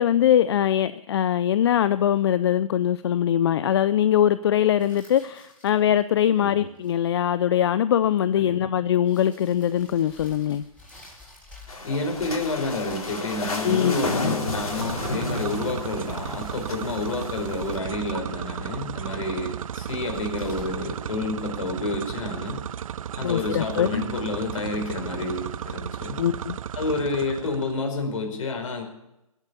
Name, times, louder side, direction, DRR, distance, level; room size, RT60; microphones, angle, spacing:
voice 1, 0.0-10.6 13.6-14.0 23.2-24.0 26.2-26.6, left 10 dB, 45° left, 0.5 m, -22 dB
sound 1, 4.8-6.0 6.7-7.1 8.5-8.6 9.0-11.9 12.2-14.1 16.0-17.0 17.3-18.4 19.7-21.8, left 2 dB, 5° left, 6.8 m, -49 dB
voice 2, 8.4-8.7 11.8-22.6 23.1-26.2 26.7-28.8, left 3 dB, 65° left, 4.8 m, -29 dB
sound 2, 11.7-17.7, left 2 dB, 85° left, 3.9 m, -32 dB
sound 3, 14.4-27.8, right 9 dB, 70° right, 0.4 m, -34 dB
20.0 x 8.3 x 7.0 m
hypercardioid pair, 140°, 18 cm